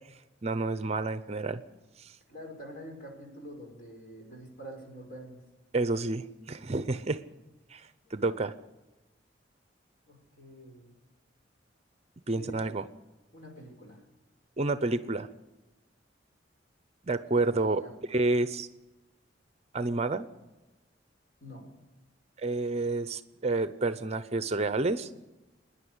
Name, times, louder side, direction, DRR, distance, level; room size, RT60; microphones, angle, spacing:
voice 1, 0.4-1.6 2.0-2.1 5.7-7.2 7.7-8.5 12.3-12.9 14.6-15.3 17.1-17.8 18.1-18.7 19.7-20.3 22.4-25.1, right 2 dB, 35° right, 12 dB, 0.7 m, -29 dB
voice 2, 2.3-5.4 8.0-8.3 10.1-10.9 12.3-12.6 13.3-14.0 17.5-17.9 21.4-21.7, equal, 50° left, 1 dB, 5.9 m, -46 dB
26.0 x 10.0 x 9.8 m, 1.1 s
head